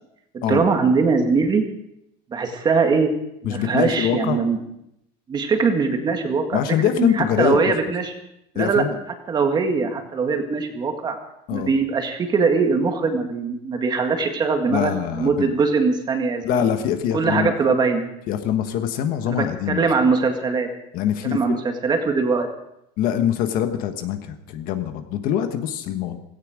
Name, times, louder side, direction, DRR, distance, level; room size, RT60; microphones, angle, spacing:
voice 1, 0.3-1.6 2.3-3.1 3.4-4.6 5.3-6.6 7.0-8.1 8.5-8.8 9.3-11.2 11.5-16.7 17.1-18.1 19.3-20.7 21.2-22.5, right 4 dB, 20° right, 5 dB, 1.9 m, -21 dB
voice 2, 3.4-4.4 6.5-7.7 8.5-9.0 11.5-11.7 14.7-15.5 16.4-17.5 18.3-19.8 20.9-21.6 23.0-26.2, left 10 dB, 45° left, 8 dB, 1.4 m, -24 dB
17.0 x 17.0 x 5.1 m, 0.81 s
cardioid pair, 165°, 20 cm